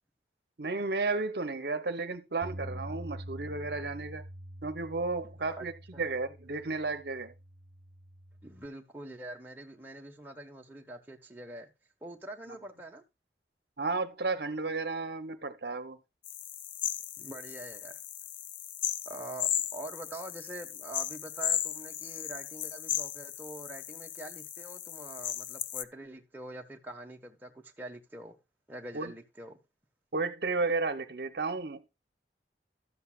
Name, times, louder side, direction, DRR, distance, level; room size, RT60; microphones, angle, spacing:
voice 1, 0.6-4.2 4.6-7.3 12.5-12.6 13.8-16.0 28.9-29.1 30.1-31.9, right 3 dB, 65° right, 0.8 m, -33 dB
Bass guitar, 2.4-8.7, equal, 50° right, 1.2 m, -45 dB
voice 2, 8.4-11.7 12.0-13.0 17.2-18.0 19.0-28.4 28.7-29.6, right 1 dB, 10° right, 1.2 m, -45 dB
sound 1, 16.3-25.8, left 11 dB, 45° left, 0.4 m, -36 dB
13.0 x 8.0 x 2.3 m
head